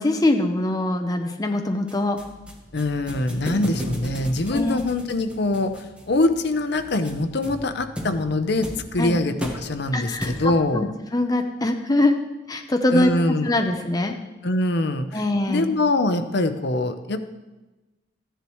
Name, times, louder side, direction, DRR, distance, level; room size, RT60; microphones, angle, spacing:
voice 1, 0.0-2.2 4.5-4.8 9.0-9.2 9.9-10.3 10.7-12.2 12.5-13.1 13.4-14.1 15.1-15.7, left 1 dB, 20° left, 4 dB, 0.7 m, -22 dB
sound 1, 1.9-10.8, equal, 5° right, 1.3 m, -36 dB
voice 2, 2.7-10.9 12.9-13.6 14.4-15.2 15.5-17.2, left 2 dB, 65° left, 9 dB, 0.8 m, -23 dB
14.5 x 10.0 x 3.1 m, 1.1 s
head